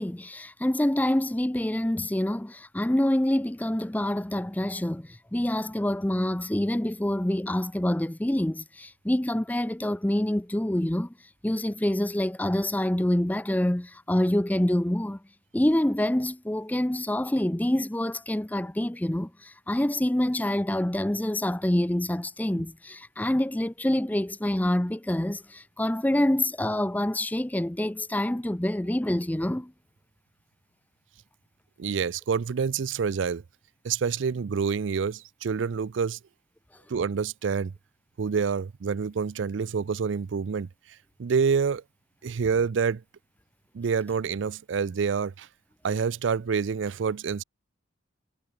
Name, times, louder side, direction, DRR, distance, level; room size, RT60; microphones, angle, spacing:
voice 1, 0.0-11.1 11.4-15.2 15.5-29.7, left 1 dB, 10° left, 0.5 m, -26 dB
voice 2, 31.8-33.4 33.8-36.2 36.9-37.7 38.2-40.7 41.2-41.8 42.2-43.0 43.7-45.5 45.8-47.4, right 6 dB, 75° right, 0.4 m, -27 dB
head